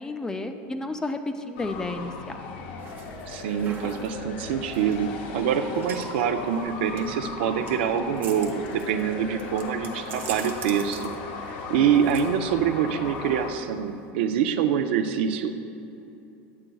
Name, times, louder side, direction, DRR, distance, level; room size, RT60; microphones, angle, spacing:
voice 1, 0.0-2.4, left 2 dB, 10° left, 7 dB, 0.3 m, -32 dB
sound 1, 1.6-13.5, left 4 dB, 75° left, 0.6 m, -37 dB
sound 2, 2.8-14.1, right 6 dB, 35° right, 0.7 m, -45 dB
voice 2, 3.3-11.1 11.7-15.5, right 8 dB, 85° right, 8 dB, 0.4 m, -25 dB
sound 3, 5.1-9.1, right 2 dB, 60° right, 0.9 m, -45 dB
9.6 x 7.8 x 2.3 m, 2.7 s
supercardioid pair, 135°, 6 cm